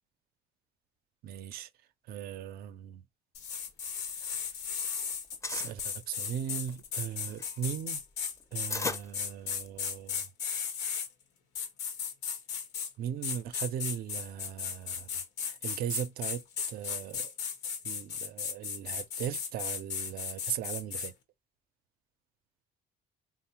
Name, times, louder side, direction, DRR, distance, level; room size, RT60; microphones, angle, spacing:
voice 1, 1.2-1.7 2.1-3.0 4.2-4.4 5.5-8.0 8.5-10.3 13.0-16.4 16.7-17.3 17.8-21.1, right 9 dB, 65° right, 0.4 m, -38 dB
sound 1, 3.3-11.1 11.5-12.9 13.2-21.1, left 7 dB, 90° left, 0.8 m, -36 dB
sound 2, 3.7-4.9 5.1-5.8 6.4-10.0, left 3 dB, 20° left, 0.4 m, -38 dB
3.3 x 2.0 x 2.7 m
cardioid pair, 110°, 17 cm